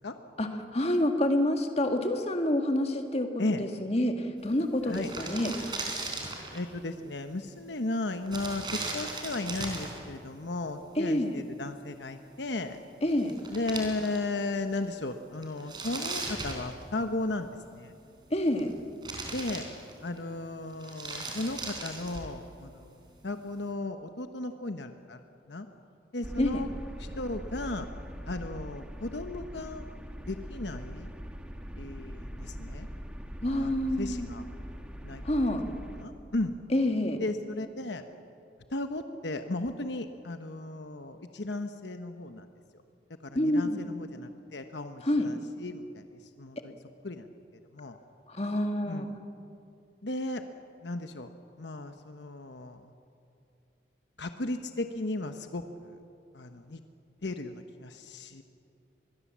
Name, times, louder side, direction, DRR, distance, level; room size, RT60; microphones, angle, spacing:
voice 1, 0.4-3.3 3.6-5.5 11.0-11.4 13.0-13.3 18.3-18.7 26.4-26.6 33.4-34.3 35.2-35.6 36.7-37.2 43.3-43.9 45.0-45.3 48.3-49.1, left 1 dB, 35° left, 5 dB, 1.8 m, -27 dB
sound 1, 4.5-4.6 4.8-6.7 8.3-10.0 12.7-12.8 13.1-14.4 14.8-14.9 15.4-17.2 18.2-18.7 19.0-20.2 20.7-22.4, right 3 dB, 25° right, 4.0 m, -37 dB
voice 2, 6.5-12.8 13.5-17.9 19.3-19.7 20.0-25.2 25.5-25.7 26.1-26.7 27.0-27.9 28.3-29.9 30.3-31.1 31.8-32.9 33.6-34.4 35.0-35.2 36.0-36.6 37.2-38.0 38.7-42.5 42.7-42.8 43.2-46.8 47.0-47.3 47.5-48.0 48.9-49.2 50.0-50.4 50.8-51.3 51.6-52.9 54.2-56.0 56.3-56.8 57.2-58.4, left 2 dB, 70° left, 7 dB, 1.0 m, -35 dB
sound 2, 26.2-36.0, equal, 5° right, 1.4 m, -42 dB
24.5 x 21.5 x 7.4 m, 2.6 s
head